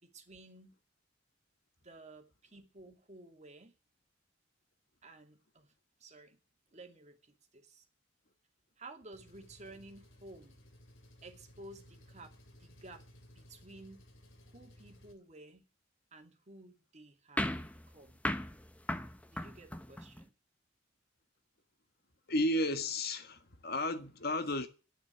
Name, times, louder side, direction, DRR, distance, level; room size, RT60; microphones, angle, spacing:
voice 1, 0.0-0.7 1.8-3.7 5.0-5.7 6.0-6.4 6.7-7.8 8.8-10.6 11.2-13.0 13.3-14.0 14.5-15.6 16.1-17.5 17.9-18.2 19.3-20.3 23.9-24.0, right 2 dB, 35° right, 2.5 m, -54 dB
Engine, 9.1-15.1, left 1 dB, 85° left, 3.3 m, -59 dB
sound 1, 17.4-20.2, left 1 dB, 5° left, 1.0 m, -37 dB
voice 2, 22.3-24.7, left 1 dB, 55° left, 1.6 m, -33 dB
10.5 x 10.0 x 9.0 m
head